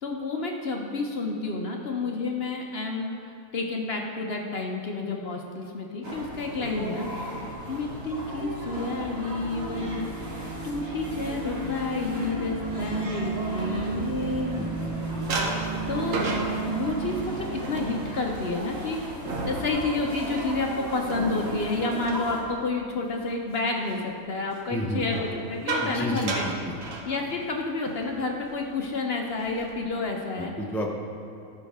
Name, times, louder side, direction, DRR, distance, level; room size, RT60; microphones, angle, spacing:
voice 1, 0.0-7.1 7.7-10.1 10.6-14.6 15.9-16.2 16.7-26.5 27.0-30.5, left 3 dB, 50° left, 1 dB, 0.9 m, -30 dB
sound 1, 6.0-22.4, right 1 dB, 45° right, 2.2 m, -37 dB
sound 2, 9.4-17.3, right 4 dB, 90° right, 2.3 m, -33 dB
sound 3, 13.4-14.8 15.3-23.1 23.5-23.8 25.0-27.6 27.9-28.1 28.4-28.7 29.1-29.8, right 2 dB, 65° right, 1.3 m, -34 dB
voice 2, 14.5-14.9 24.7-25.0 25.8-26.7 30.4-30.9, left 1 dB, ahead, 0 dB, 0.4 m, -31 dB
14.0 x 5.6 x 3.5 m, 2.7 s
omnidirectional pair, 1.5 m